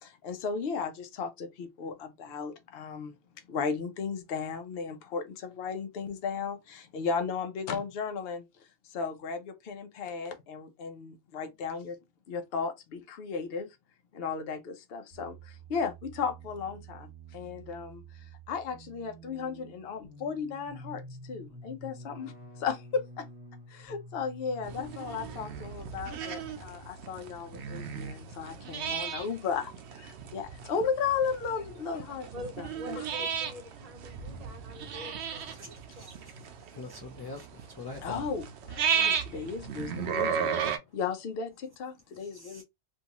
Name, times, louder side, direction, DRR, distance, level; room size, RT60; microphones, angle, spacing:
voice 1, 0.0-3.2 3.5-8.4 8.9-12.0 12.3-13.7 14.1-18.0 18.5-23.3 23.7-33.0 38.0-40.5 40.9-42.6, left 5 dB, 70° left, 0.8 m, -35 dB
sound 1, 15.1-31.1, right 1 dB, 25° right, 1.2 m, -50 dB
sound 2, 24.6-40.8, right 7 dB, 90° right, 0.9 m, -35 dB
voice 2, 32.3-36.3, left 1 dB, 40° right, 0.7 m, -46 dB
voice 3, 36.7-38.3 42.2-42.6, left 3 dB, 30° left, 0.4 m, -43 dB
2.6 x 2.3 x 2.9 m
omnidirectional pair, 1.1 m